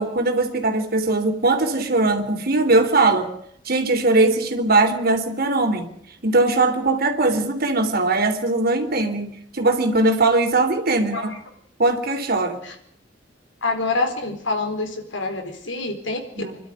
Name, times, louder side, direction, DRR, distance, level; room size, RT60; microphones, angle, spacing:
voice 1, 0.0-3.3 3.7-5.9 6.2-11.3 11.8-12.6 16.4-16.6, right 2 dB, 55° right, 4 dB, 3.6 m, -20 dB
voice 2, 13.6-16.4, left 3 dB, 85° left, 5 dB, 4.5 m, -26 dB
26.5 x 12.5 x 9.7 m, 0.72 s
head